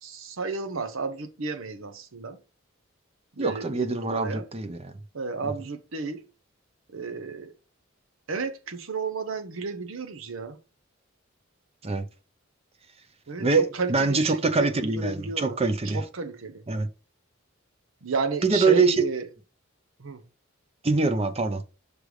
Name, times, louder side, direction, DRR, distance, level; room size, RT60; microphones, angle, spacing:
voice 1, 0.0-2.4 3.4-4.5 5.1-6.2 6.9-7.5 8.3-10.6 13.3-15.6 15.8-16.6 18.0-19.3 20.0-20.2, right 4 dB, 75° right, 0.8 m, -32 dB
voice 2, 3.4-4.9 11.8-12.0 13.4-16.0 16.7-16.9 18.4-18.9 20.8-21.6, right 4 dB, 30° right, 0.6 m, -24 dB
6.3 x 3.3 x 4.8 m
head